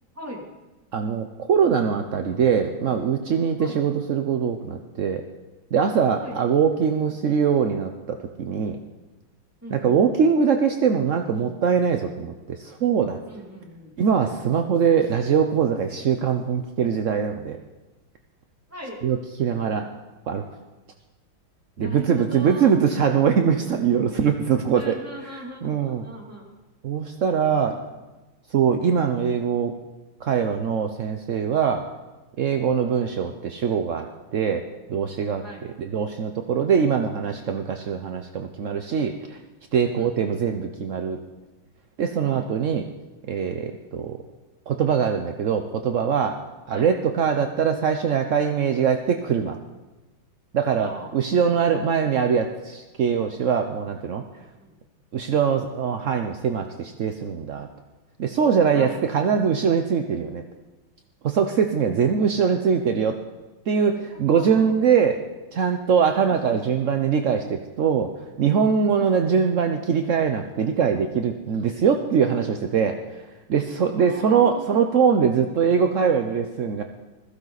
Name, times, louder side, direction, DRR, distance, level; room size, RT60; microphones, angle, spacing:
voice 1, 0.1-0.5 3.6-3.8 6.2-6.4 9.6-10.0 13.3-13.9 18.7-19.0 21.8-22.7 24.7-26.4 27.9-28.0 35.4-35.7 39.9-40.4 42.2-42.6 46.7-46.9 50.8-51.6 54.6-54.8 58.7-59.0 61.9-62.3 64.1-64.7 66.1-66.6 68.9-69.3 74.0-75.0, equal, 5° right, -2 dB, 2.8 m, -40 dB
voice 2, 0.9-5.2 5.7-8.8 9.7-13.2 14.0-17.6 19.0-19.9 20.3-20.4 21.8-26.1 26.8-27.8 28.5-29.7 30.2-31.9 32.4-34.6 34.9-35.4 35.8-39.4 39.7-41.2 42.0-42.9 43.2-44.2 44.7-46.4 46.7-49.6 50.5-54.2 55.1-57.7 58.2-60.4 61.2-63.2 63.7-65.2 65.5-68.1 68.4-73.0 73.5-76.8, right 7 dB, 60° right, 5 dB, 0.8 m, -22 dB
20.5 x 15.0 x 4.0 m, 1.1 s
omnidirectional pair, 2.3 m